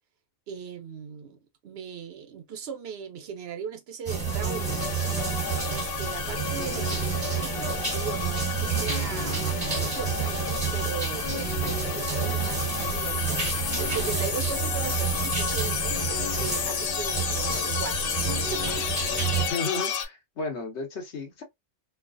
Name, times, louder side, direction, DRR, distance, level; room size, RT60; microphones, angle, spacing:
voice 1, 0.5-4.8 5.4-7.0 7.3-18.9, right 7 dB, 70° right, 0.9 m, -38 dB
sound 1, 4.1-19.5, right 6 dB, 25° right, 1.5 m, -30 dB
sound 2, 4.3-20.1, left 7 dB, 65° left, 0.8 m, -32 dB
voice 2, 19.4-21.4, left 4 dB, 85° left, 1.2 m, -33 dB
3.1 x 2.0 x 2.5 m
omnidirectional pair, 1.1 m